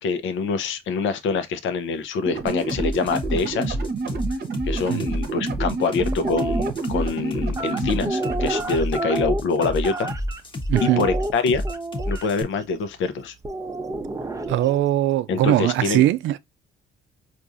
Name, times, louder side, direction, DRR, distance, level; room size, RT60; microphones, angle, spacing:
voice 1, 0.0-3.8 4.6-10.1 10.8-11.7 12.1-13.3 15.3-16.0, left 4 dB, 75° left, 0.7 m, -25 dB
sound 1, 2.3-8.6, right 3 dB, 50° right, 0.8 m, -29 dB
sound 2, 2.5-12.4, equal, 25° left, 0.9 m, -29 dB
sound 3, 6.1-6.7 7.5-10.4 10.7-12.3 13.4-14.8, right 2 dB, 15° right, 0.5 m, -29 dB
voice 2, 10.7-11.1 14.5-16.4, right 13 dB, 75° right, 0.4 m, -20 dB
4.6 x 2.5 x 2.5 m
cardioid pair, 90°, 20 cm